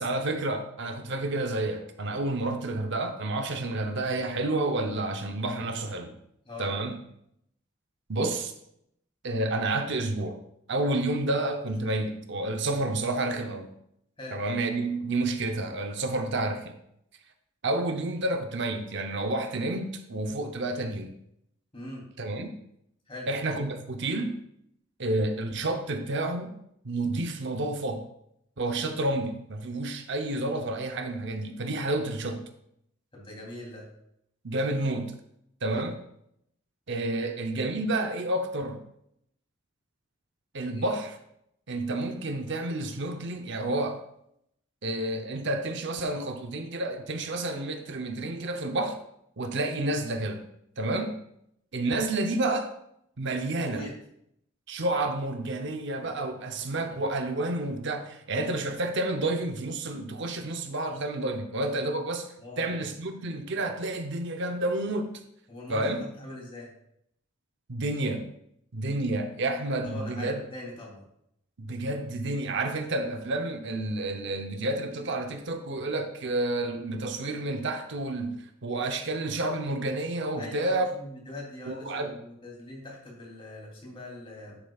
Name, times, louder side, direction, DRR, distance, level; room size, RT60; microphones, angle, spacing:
voice 1, 0.0-6.1 6.6-7.0 8.1-8.5 9.2-10.4 10.7-13.7 14.3-16.8 17.6-21.1 22.2-22.6 23.3-24.4 25.0-26.5 26.8-28.1 28.6-32.5 34.4-35.1 35.6-36.0 36.9-38.8 40.5-41.2 41.7-44.0 44.8-49.0 49.4-50.4 50.8-51.2 51.7-52.7 53.2-53.9 54.7-62.3 62.6-65.2 65.7-66.0 67.7-68.3 68.7-70.4 71.6-80.9 81.7-82.1, right 2 dB, 60° right, 6 dB, 0.7 m, -30 dB
voice 2, 21.7-22.0 23.1-23.3 33.1-33.9 37.2-37.3 40.7-40.9 53.6-53.9 56.8-56.9 62.4-62.7 65.5-66.7 69.8-71.0 80.4-84.6, left 1 dB, 25° left, -3 dB, 3.0 m, -41 dB
10.0 x 8.8 x 2.4 m, 0.75 s
head